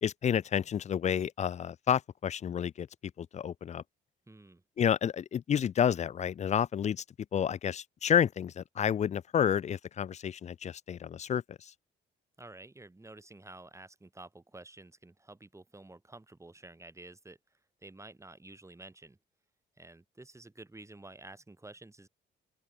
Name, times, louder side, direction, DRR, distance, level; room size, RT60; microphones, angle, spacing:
voice 1, 0.0-2.9 3.2-3.8 4.8-7.0 7.3-11.6, left 8 dB, 35° left, 0.4 m, -30 dB
voice 2, 4.3-4.6 12.4-19.2 19.8-22.1, right 2 dB, 15° right, 3.9 m, -51 dB
open air
cardioid pair, 90°, 20 cm